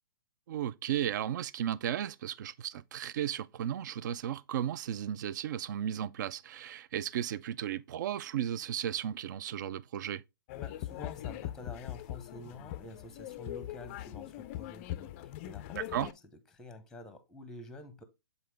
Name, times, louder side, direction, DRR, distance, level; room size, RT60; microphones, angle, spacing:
voice 1, 0.5-10.2 15.8-16.1, right 10 dB, 50° right, 0.4 m, -35 dB
sound 1, 10.5-16.1, left 14 dB, 35° left, 0.4 m, -41 dB
voice 2, 10.5-16.1 16.5-18.0, left 2 dB, 5° left, 0.9 m, -49 dB
7.4 x 4.0 x 3.4 m
hypercardioid pair, 130°, 12 cm